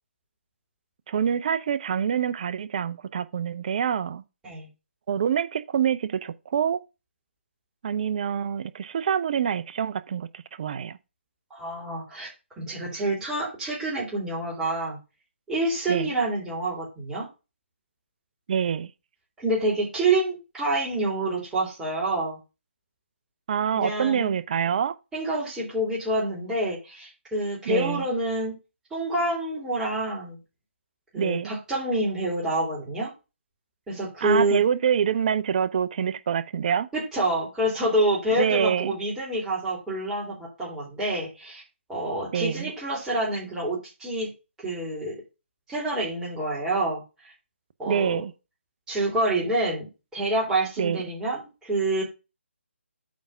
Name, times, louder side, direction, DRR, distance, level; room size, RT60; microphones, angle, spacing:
voice 1, 1.1-4.2 5.1-6.8 7.8-11.0 15.9-16.1 18.5-18.9 23.5-24.9 27.7-28.0 31.2-31.5 34.2-36.9 38.4-38.9 42.3-42.7 47.9-48.3 50.8-51.1, right 8 dB, 40° right, 0.6 m, -26 dB
voice 2, 11.5-12.3 12.6-15.0 15.5-17.3 19.4-22.4 23.7-24.3 25.1-28.5 28.9-30.4 31.1-33.1 33.9-34.6 36.9-41.6 41.9-44.3 44.6-45.2 45.7-47.3 47.8-48.2 48.9-52.0, right 1 dB, 10° right, 2.9 m, -27 dB
8.8 x 3.5 x 5.5 m
figure-of-eight pair, 145°, 7 cm